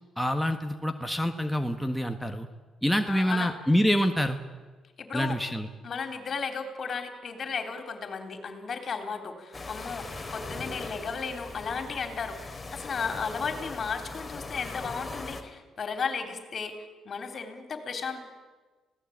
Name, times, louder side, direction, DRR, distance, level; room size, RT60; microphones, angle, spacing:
voice 1, 0.2-2.5 2.8-4.4 5.1-5.7, equal, ahead, 4 dB, 1.4 m, -26 dB
voice 2, 3.1-3.5 5.0-5.4 5.8-16.8 17.1-18.2, left 5 dB, 50° left, 6 dB, 3.7 m, -34 dB
sound 1, 9.5-15.4, left 3 dB, 20° left, 3.1 m, -40 dB
26.5 x 17.0 x 8.8 m, 1.3 s
cardioid pair, 90°, 0 cm